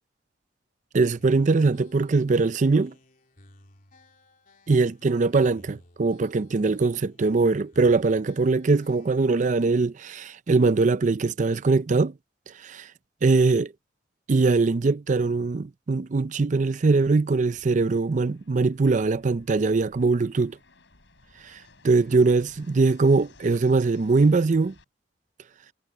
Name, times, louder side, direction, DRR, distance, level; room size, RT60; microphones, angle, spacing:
voice 1, 0.9-2.9 4.7-12.1 12.6-12.9 13.2-13.7 14.3-20.6 21.4-21.6 21.8-24.7, right 3 dB, 45° right, 0.5 m, -22 dB
sound 1, 1.2-9.9, left 1 dB, 50° left, 3.4 m, -56 dB
Fixed-wing aircraft airplane, 17.4-24.8, left 2 dB, 80° left, 4.7 m, -56 dB
head